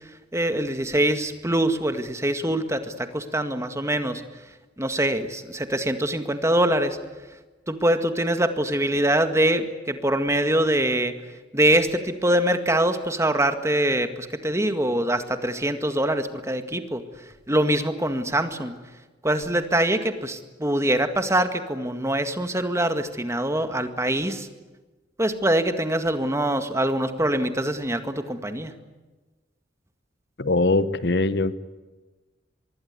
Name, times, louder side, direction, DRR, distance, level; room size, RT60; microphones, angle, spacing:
voice 1, 0.3-4.2 4.8-7.0 7.7-11.1 11.5-17.0 17.5-18.7 19.2-24.5 25.2-28.7, right 1 dB, 15° right, 8 dB, 1.9 m, -24 dB
voice 2, 30.4-31.5, left 2 dB, 65° left, 13 dB, 1.1 m, -22 dB
25.0 x 23.0 x 9.7 m, 1.2 s
head